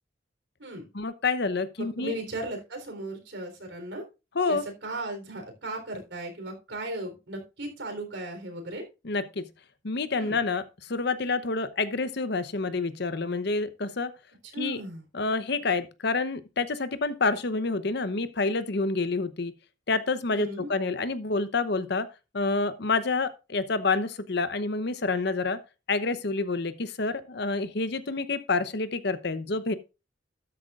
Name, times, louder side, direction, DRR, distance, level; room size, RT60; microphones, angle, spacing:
voice 1, 0.9-2.2 4.3-4.6 9.0-9.5 9.8-10.6 10.9-14.1 14.6-14.8 15.1-19.5 19.9-22.1 22.3-25.6 25.9-29.8, left 3 dB, 60° left, 0.8 m, -28 dB
voice 2, 1.8-4.0 4.5-8.8 10.2-10.4 14.5-15.0 20.3-20.7, right 1 dB, 70° right, 3.7 m, -36 dB
13.0 x 10.0 x 2.5 m
head